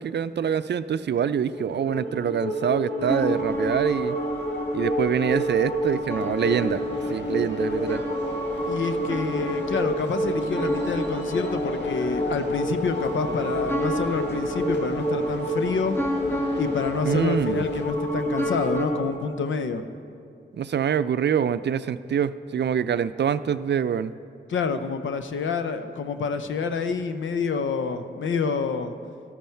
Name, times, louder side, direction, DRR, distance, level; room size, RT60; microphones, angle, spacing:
voice 1, 0.0-4.2 4.7-6.8 7.1-8.0 17.1-17.6 20.5-24.1, right 8 dB, 65° right, 0.4 m, -25 dB
sound 1, 1.5-19.0, equal, 45° left, 2.2 m, -29 dB
sound 2, 3.0-18.9, left 1 dB, 15° left, 1.3 m, -35 dB
sound 3, 6.3-17.8, left 1 dB, 65° left, 1.7 m, -39 dB
voice 2, 8.7-16.0 16.6-19.8 24.5-28.9, left 5 dB, 85° left, 0.6 m, -28 dB
12.5 x 12.5 x 4.5 m
cardioid pair, 40°, 19 cm